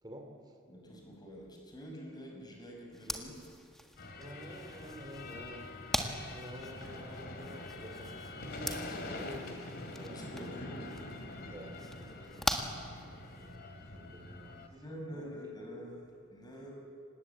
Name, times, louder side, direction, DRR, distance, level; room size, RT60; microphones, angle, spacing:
voice 1, 0.0-0.6 4.2-5.9 6.3-10.5 11.5-12.6 12.9-15.5, right 1 dB, 20° right, 3 dB, 2.7 m, -50 dB
voice 2, 0.7-3.4 8.7-9.2 10.1-10.9 14.7-16.7, equal, 20° left, 0 dB, 6.1 m, -47 dB
sound 1, 2.9-13.6, equal, ahead, 1.7 m, -42 dB
sound 2, 4.0-14.7, left 2 dB, 50° left, 2.9 m, -45 dB
sound 3, 4.7-5.0 6.2-6.4 6.8-7.1 8.5-8.7 9.0-9.2 9.6-9.8, right 4 dB, 60° right, 4.0 m, -61 dB
26.5 x 19.5 x 8.5 m, 2.3 s
head